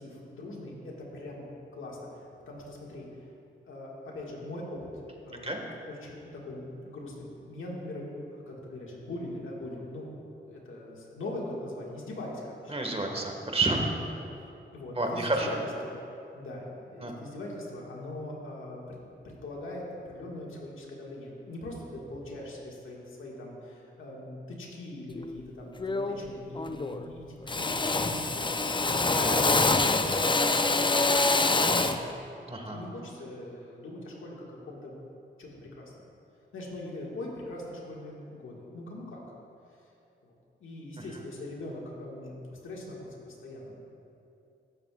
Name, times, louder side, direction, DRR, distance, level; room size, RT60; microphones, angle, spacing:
voice 1, 0.0-1.4 1.7-3.1 3.7-12.7 13.9-14.1 14.7-16.0 16.3-19.0 19.2-28.7 29.3-30.3 30.7-32.1 32.7-34.9 35.4-35.9 36.5-39.2 40.2-40.3 40.6-43.9, left 1 dB, 80° left, -3 dB, 1.8 m, -41 dB
voice 2, 12.7-13.8 15.0-15.5 17.0-17.1 29.0-29.1 32.5-32.8, right 3 dB, 30° right, 2 dB, 1.6 m, -29 dB
Drill, 25.2-25.4 25.8-26.3 26.6-27.1 27.5-32.1, left 3 dB, 25° left, 0.5 m, -26 dB
15.0 x 7.4 x 2.4 m, 2.7 s
cardioid pair, 45°, 20 cm